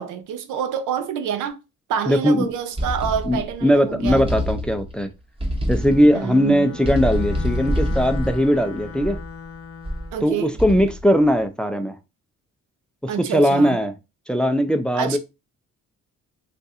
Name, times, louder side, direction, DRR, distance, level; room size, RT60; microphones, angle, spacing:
voice 1, 0.0-1.6 1.9-4.3 5.9-6.8 10.1-10.6 13.1-13.8 14.9-15.2, right 8 dB, 90° right, 0.6 m, -27 dB
voice 2, 2.1-2.5 3.3-5.1 5.7-9.2 10.2-12.0 13.0-13.9 14.3-15.2, equal, 5° left, 0.4 m, -19 dB
sound 1, 2.8-3.6 4.1-5.0 5.4-6.2 6.8-9.4 9.8-10.2 10.6-11.1, equal, 20° right, 0.9 m, -26 dB
Bowed string instrument, 5.7-10.2, left 6 dB, 50° left, 0.6 m, -38 dB
2.5 x 2.4 x 4.0 m
cardioid pair, 90°, 30 cm